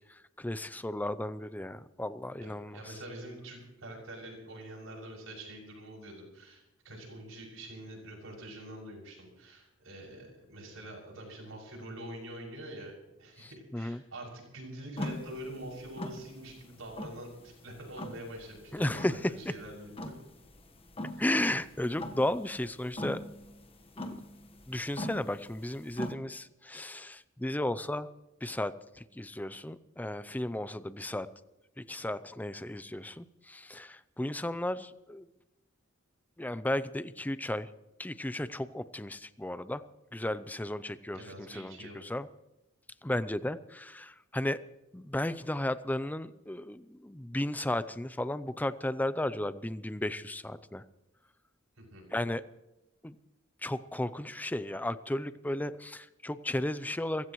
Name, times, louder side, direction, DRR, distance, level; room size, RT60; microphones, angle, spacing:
voice 1, 0.4-2.8 13.4-14.0 18.7-19.3 21.2-23.2 24.0-24.2 24.7-28.1 28.4-31.3 31.9-35.3 36.4-37.7 38.0-39.8 40.1-41.2 41.5-42.3 43.0-44.6 44.9-50.8 52.1-52.4 53.0-53.2 53.6-57.3, left 1 dB, 10° left, 14 dB, 0.5 m, -34 dB
voice 2, 2.4-12.9 13.2-20.0 21.1-21.2 41.1-42.1 51.8-52.1, right 1 dB, 80° right, -1 dB, 6.6 m, -45 dB
sound 1, 15.0-26.1, left 1 dB, 30° left, 1.3 m, -42 dB
28.0 x 16.0 x 3.1 m, 0.95 s
head